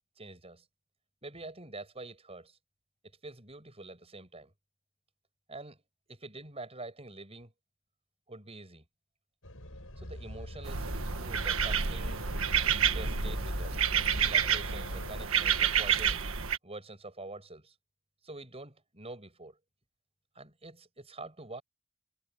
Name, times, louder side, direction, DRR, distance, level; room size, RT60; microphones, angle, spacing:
voice 1, 0.2-0.7 1.2-2.6 3.2-4.5 5.5-5.8 6.1-7.5 8.3-8.8 10.0-10.9 11.2-12.3 12.9-13.8 14.2-16.2 16.6-17.7 18.2-19.6 20.3-21.6, right 2 dB, 25° right, 7.4 m, -46 dB
sound 1, 9.4-15.3, left 1 dB, 70° left, 7.1 m, -42 dB
sound 2, 10.6-16.6, right 7 dB, 70° right, 1.6 m, -29 dB
head